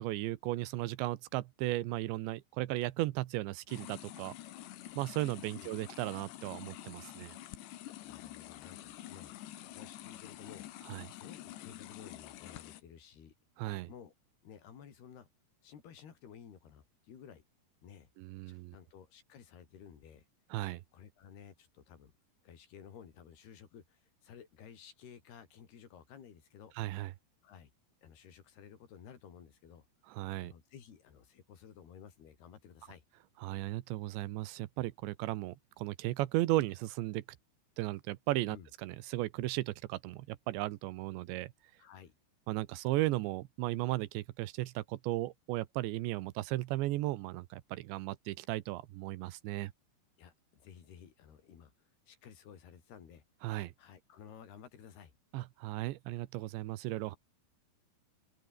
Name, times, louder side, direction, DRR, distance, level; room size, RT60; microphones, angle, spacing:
voice 1, 0.0-4.3 5.0-7.4 10.9-11.1 13.6-13.9 18.2-18.8 20.5-20.8 26.8-27.1 30.1-30.5 33.4-37.2 37.8-38.6 38.8-41.5 42.5-49.7 53.4-53.7 55.3-57.2, right 17 dB, 90° right, 3.3 m, -35 dB
sound 1, 3.7-12.8, left 14 dB, 80° left, 3.7 m, -48 dB
voice 2, 8.0-9.4 9.6-10.7 11.1-13.3 13.9-14.1 14.4-15.3 15.6-17.4 17.8-18.1 18.5-20.3 20.9-22.1 22.4-26.7 27.4-27.7 28.0-29.9 30.4-33.0 38.5-38.7 41.8-42.2 50.2-53.2 53.8-55.1, left 8 dB, 65° left, 5.3 m, -54 dB
omnidirectional pair, 5.0 m